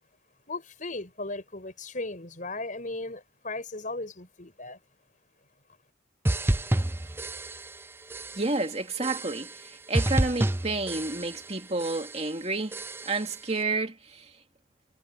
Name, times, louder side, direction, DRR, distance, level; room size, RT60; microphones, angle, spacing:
voice 1, 0.5-4.8, left 2 dB, 40° left, 5.5 m, -36 dB
sound 1, 6.2-7.8 8.1-8.6 9.0-9.7 9.9-11.5 11.8-12.3 12.7-13.3, right 1 dB, 10° right, 0.5 m, -30 dB
voice 2, 8.3-12.8 13.1-14.3, right 3 dB, 35° right, 2.5 m, -30 dB
head